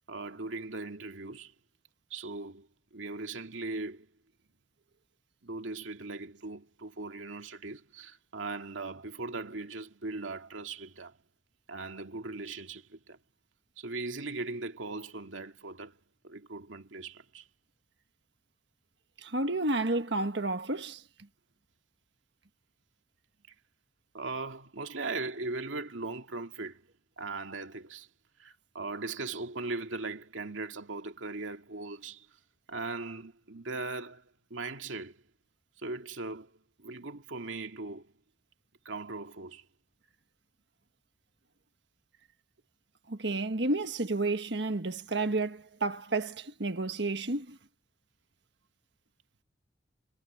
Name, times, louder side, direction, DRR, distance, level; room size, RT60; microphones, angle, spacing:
voice 1, 0.1-1.5 2.1-4.1 5.4-11.2 11.7-13.2 13.8-16.0 16.2-17.5 24.1-26.9 27.2-28.1 28.4-32.4 32.7-35.2 35.8-38.1 38.8-39.7, right 3 dB, 90° right, 2.2 m, -39 dB
voice 2, 19.2-21.0 43.1-47.6, right 2 dB, 60° right, 1.5 m, -31 dB
head